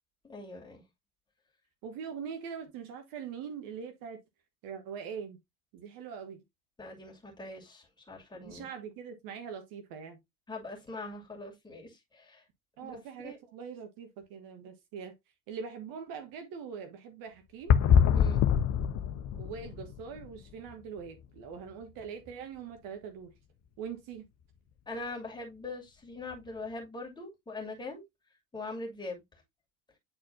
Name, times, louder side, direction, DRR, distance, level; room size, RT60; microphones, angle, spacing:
voice 1, 0.2-0.8 6.8-8.7 10.5-12.4 12.8-13.0 13.2-13.4 18.1-18.4 24.9-28.0 28.5-29.2, left 2 dB, 10° left, 2.6 m, -42 dB
voice 2, 1.8-4.2 4.6-5.4 5.7-6.4 8.3-10.2 12.8-15.1 15.5-17.8 19.4-23.3 23.8-24.2, right 6 dB, 50° right, 1.5 m, -42 dB
sound 1, 17.7-20.7 21.0-21.1 21.7-21.8 26.3-26.4, left 8 dB, 35° left, 0.7 m, -25 dB
9.3 x 4.3 x 2.7 m
figure-of-eight pair, 70°, 44 cm